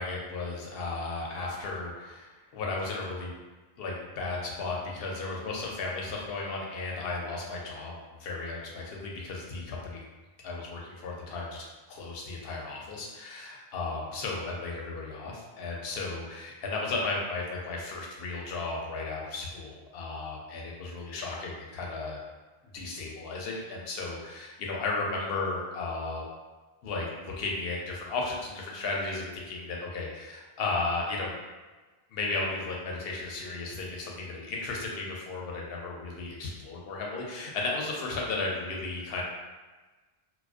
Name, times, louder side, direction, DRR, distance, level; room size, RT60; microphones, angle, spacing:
voice 1, 0.0-3.3 3.8-10.0 10.4-22.2 22.7-26.3 26.8-31.3 32.1-39.2, left 3 dB, 70° left, -2 dB, 0.8 m, -34 dB
2.3 x 2.2 x 2.4 m, 1.3 s
omnidirectional pair, 1.1 m